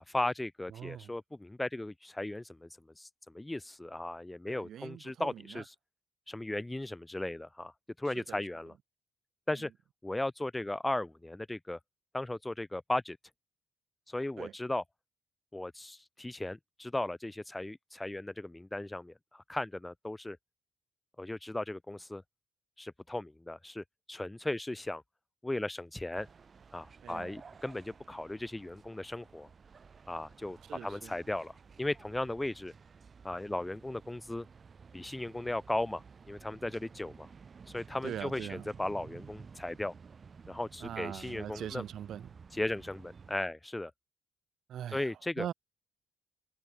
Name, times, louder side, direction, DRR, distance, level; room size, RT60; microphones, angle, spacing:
voice 1, 0.1-2.7 3.0-3.1 3.3-5.7 6.3-7.7 8.0-8.7 9.5-9.7 10.0-11.8 12.1-13.2 14.1-14.8 15.5-20.4 21.2-22.2 22.8-25.0 25.4-26.3 26.7-29.5 30.1-31.5 31.8-32.7 33.2-34.5 34.9-37.3 37.7-39.9 40.5-41.8 42.5-43.9 44.9-45.5, left 1 dB, 10° left, 1.0 m, -36 dB
voice 2, 0.7-1.1 4.5-5.6 8.3-8.4 9.6-9.7 14.4-14.5 27.0-27.3 30.7-31.1 38.0-38.7 40.8-42.3 44.7-45.1 45.4-45.5, right 10 dB, 60° right, 6.4 m, -42 dB
sound 1, 26.1-43.3, right 5 dB, 35° right, 6.1 m, -54 dB
cardioid pair, 110°, 0 cm